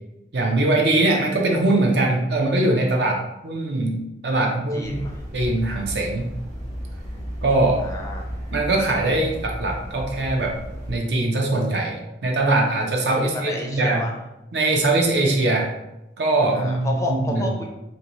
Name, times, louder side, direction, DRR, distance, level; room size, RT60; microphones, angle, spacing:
voice 1, 0.3-5.0 5.3-6.3 7.4-7.8 8.5-10.6 10.9-14.0 14.5-15.7 16.2-17.4, right 2 dB, 70° right, 1 dB, 0.6 m, -21 dB
voice 2, 4.7-5.2 7.8-8.3 13.3-14.1 16.5-17.7, left 2 dB, 20° left, 0 dB, 0.4 m, -30 dB
sound 1, 4.8-11.0, equal, 40° right, 1.4 m, -34 dB
2.8 x 2.6 x 2.9 m, 0.92 s
head